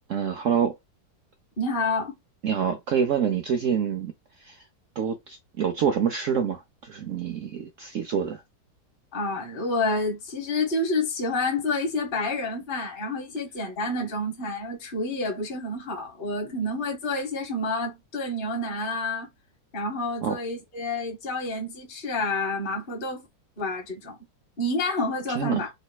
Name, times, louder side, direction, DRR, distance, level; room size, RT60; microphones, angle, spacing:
voice 1, 0.1-0.7 2.4-4.1 4.4-4.6 5.0-8.4 20.2-20.4 25.4-25.6, right 7 dB, 80° right, 0.7 m, -26 dB
voice 2, 1.6-2.2 9.1-19.3 19.7-23.3 23.6-24.2 24.6-25.7, left 2 dB, 35° left, 1.1 m, -29 dB
4.2 x 3.2 x 2.2 m
omnidirectional pair, 1.9 m